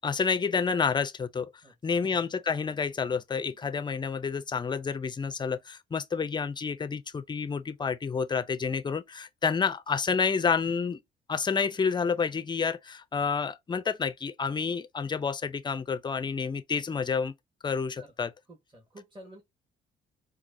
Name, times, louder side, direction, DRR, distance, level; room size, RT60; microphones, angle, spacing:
voice 1, 0.0-1.5 1.8-11.0 11.3-17.3 17.6-18.3, left 5 dB, 20° left, 0.4 m, -29 dB
voice 2, 1.6-2.0 18.0-18.1 18.5-19.4, equal, 25° right, 1.3 m, -50 dB
4.4 x 2.3 x 2.5 m
cardioid pair, 90°, 20 cm